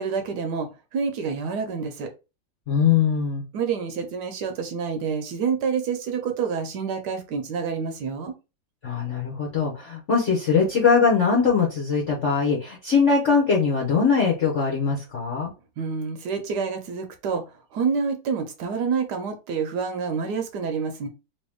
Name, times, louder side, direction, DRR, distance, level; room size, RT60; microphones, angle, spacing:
voice 1, 0.0-2.1 3.5-8.3 15.8-17.4 17.7-21.1, right 5 dB, 70° right, 1.1 m, -28 dB
voice 2, 2.7-3.4 8.8-15.5, left 5 dB, 50° left, 1.0 m, -21 dB
3.1 x 2.9 x 3.5 m
omnidirectional pair, 2.1 m